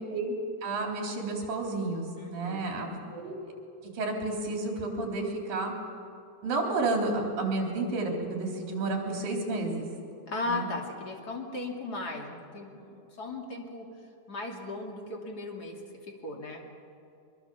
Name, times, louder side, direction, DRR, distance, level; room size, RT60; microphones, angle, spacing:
voice 1, 0.6-3.4 3.9-5.7 6.4-9.9 10.5-10.7, right 3 dB, 60° right, 1 dB, 5.0 m, -31 dB
voice 2, 2.2-2.9 10.3-13.8 14.3-15.8 16.2-16.6, left 2 dB, 30° left, 1 dB, 2.5 m, -37 dB
23.5 x 23.0 x 7.0 m, 2.5 s
omnidirectional pair, 4.6 m